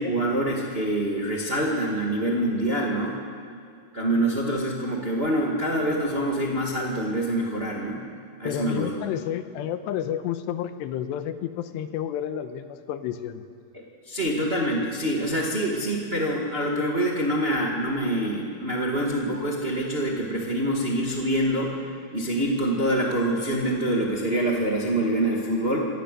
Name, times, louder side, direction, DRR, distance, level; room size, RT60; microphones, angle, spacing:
voice 1, 0.0-3.2 3.9-8.0 8.4-8.9 13.7-21.7 22.1-25.8, right 1 dB, 85° right, -2 dB, 0.5 m, -25 dB
voice 2, 8.4-13.4, left 10 dB, 90° left, 10 dB, 3.1 m, -30 dB
26.5 x 18.5 x 6.7 m, 2.2 s
omnidirectional pair, 4.8 m